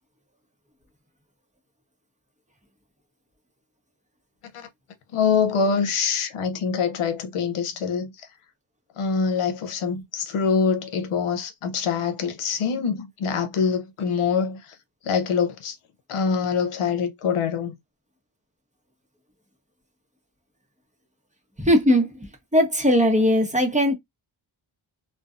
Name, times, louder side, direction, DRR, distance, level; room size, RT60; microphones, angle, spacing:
voice 1, 5.1-8.3 9.0-14.7 15.0-15.8 16.1-17.8, left 6 dB, 90° left, 0.7 m, -24 dB
voice 2, 21.6-22.1 22.5-23.9, equal, 15° right, 0.9 m, -19 dB
2.5 x 2.2 x 2.4 m
cardioid pair, 50°, 49 cm